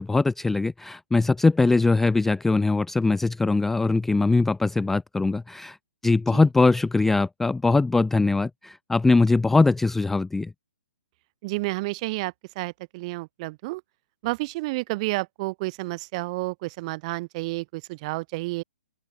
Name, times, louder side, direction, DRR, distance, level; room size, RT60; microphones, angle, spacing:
voice 1, 0.0-5.8 6.0-10.5, left 3 dB, 5° left, 0.4 m, -21 dB
voice 2, 11.4-13.8 14.2-18.6, right 23 dB, 30° right, 1.6 m, -30 dB
open air
figure-of-eight pair, 125°, 7 cm